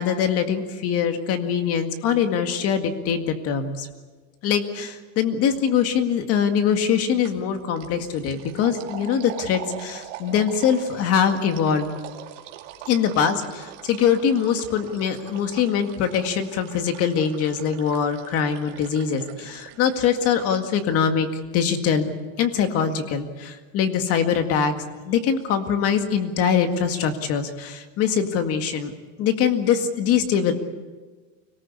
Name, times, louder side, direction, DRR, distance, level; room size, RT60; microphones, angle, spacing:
voice 1, 0.0-3.9 4.4-11.9 12.9-21.3 21.5-24.7 25.0-28.9 29.2-30.5, left 7 dB, 40° left, 7 dB, 2.0 m, -23 dB
sound 1, 7.2-7.5 7.8-20.6, right 11 dB, 80° right, 2.5 m, -42 dB
25.0 x 18.5 x 8.4 m, 1.4 s
cardioid pair, 165°, 36 cm